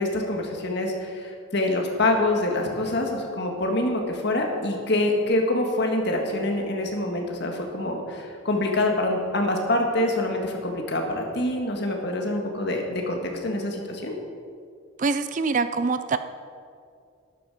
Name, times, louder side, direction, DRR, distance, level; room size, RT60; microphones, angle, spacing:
voice 1, 0.0-14.1, left 1 dB, 50° left, 2 dB, 1.7 m, -25 dB
voice 2, 15.0-16.2, right 4 dB, 35° right, 11 dB, 0.4 m, -24 dB
12.5 x 11.5 x 4.9 m, 2.3 s
head